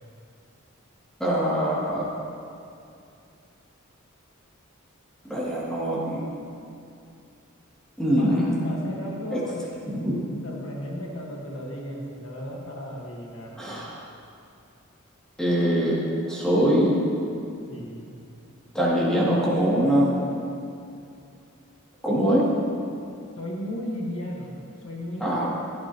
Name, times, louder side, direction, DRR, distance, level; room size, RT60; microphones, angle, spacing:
voice 1, 1.2-2.1 5.2-6.2 8.0-8.7 9.3-9.4 9.9-10.2 13.6-14.0 15.4-16.0 16.3-16.9 18.7-20.1 22.0-22.5 25.2-25.5, equal, 5° left, -7 dB, 2.5 m, -23 dB
voice 2, 8.6-9.7 10.4-13.6 17.7-18.1 23.4-25.5, left 1 dB, 65° left, -2 dB, 1.6 m, -35 dB
16.0 x 11.5 x 3.0 m, 2.5 s
head